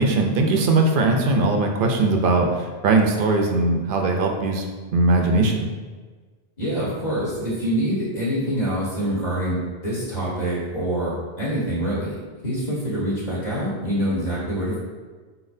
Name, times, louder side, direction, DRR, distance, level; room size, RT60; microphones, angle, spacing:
voice 1, 0.0-4.7 4.9-5.7, right 2 dB, 60° right, 3 dB, 0.6 m, -20 dB
voice 2, 6.6-12.2 12.4-14.8, right 1 dB, 40° left, -10 dB, 1.4 m, -25 dB
4.3 x 3.9 x 2.6 m, 1.4 s
omnidirectional pair, 1.1 m